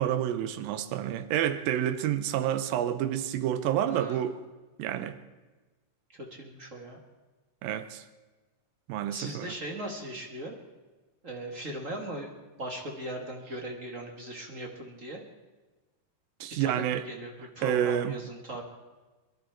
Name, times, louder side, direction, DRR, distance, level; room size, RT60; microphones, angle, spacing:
voice 1, 0.0-4.4 4.8-5.2 7.6-8.0 8.9-9.5 16.4-17.0 17.6-18.2, right 10 dB, 85° right, 2.6 m, -29 dB
voice 2, 3.8-4.2 6.2-7.0 9.1-10.5 11.2-12.3 12.6-15.2 16.6-18.6, right 1 dB, 40° right, 1.2 m, -39 dB
23.0 x 12.0 x 4.6 m
omnidirectional pair, 4.0 m